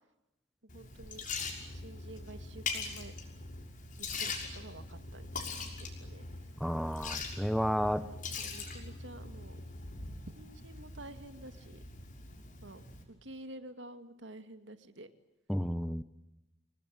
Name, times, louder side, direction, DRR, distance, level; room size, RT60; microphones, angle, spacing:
Liquid, 0.7-13.0, left 4 dB, 45° left, 6.1 m, -42 dB
voice 1, 0.7-1.3 1.7-3.1 4.0-6.2 8.0-9.6 10.4-11.8 12.6-12.8 13.1-15.1, right 1 dB, 65° right, 9 dB, 2.3 m, -50 dB
voice 2, 6.6-8.0 15.5-16.0, equal, ahead, 13 dB, 0.9 m, -31 dB
29.5 x 20.5 x 9.0 m, 0.93 s
head